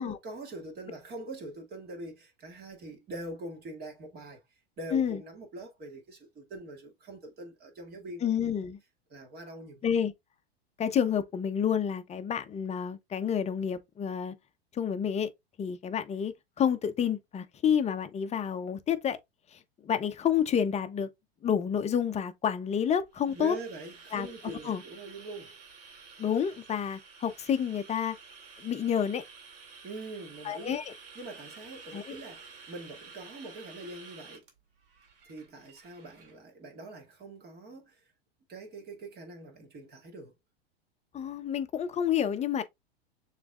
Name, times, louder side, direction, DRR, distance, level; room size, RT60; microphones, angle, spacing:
voice 1, 0.0-4.4 4.8-8.3 9.1-9.9 23.3-25.6 29.8-30.7 31.2-34.4 35.2-38.0 38.5-40.3, right 2 dB, 30° right, 2.2 m, -43 dB
voice 2, 8.2-8.8 9.8-10.1 10.8-14.3 14.7-15.3 15.6-19.2 19.5-21.1 21.4-23.6 24.1-24.8 26.2-28.2 28.6-29.2 30.4-30.9 31.9-32.2 41.1-42.6, left 8 dB, 20° left, 0.7 m, -29 dB
sound 1, 22.9-36.4, right 5 dB, 60° right, 2.3 m, -51 dB
6.8 x 3.3 x 2.4 m
hypercardioid pair, 100°, 31 cm